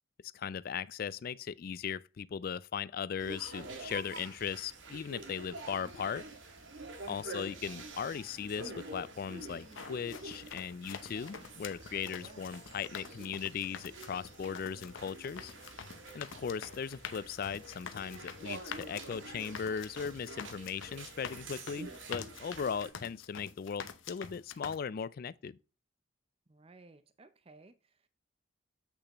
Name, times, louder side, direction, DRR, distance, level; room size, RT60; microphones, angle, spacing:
voice 1, 0.3-6.3 7.1-15.5 16.1-25.6, left 7 dB, 50° left, 0.3 m, -38 dB
sound 1, 3.2-22.9, right 2 dB, 70° right, 1.9 m, -48 dB
voice 2, 7.1-7.5 12.2-12.5 26.5-28.1, right 3 dB, 30° right, 0.6 m, -58 dB
sound 2, 9.5-24.8, left 6 dB, 80° left, 0.8 m, -47 dB
8.1 x 6.6 x 3.0 m
head